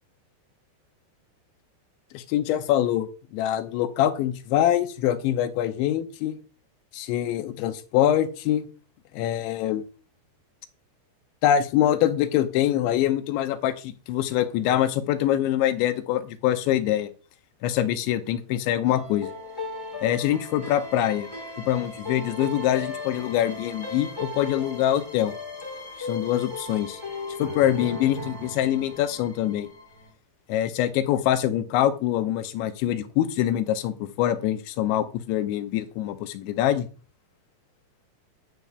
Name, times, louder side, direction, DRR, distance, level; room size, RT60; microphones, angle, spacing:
voice 1, 2.1-6.4 6.9-8.7 9.1-9.8 11.4-17.1 17.6-19.3 20.0-21.3 21.7-25.3 26.0-27.0 27.4-29.7 30.5-36.9, left 11 dB, 80° left, 9 dB, 3.1 m, -24 dB
sound 1, 18.8-30.1, left 3 dB, 5° left, 2.1 m, -37 dB
11.0 x 4.8 x 6.9 m, 0.38 s
omnidirectional pair, 5.4 m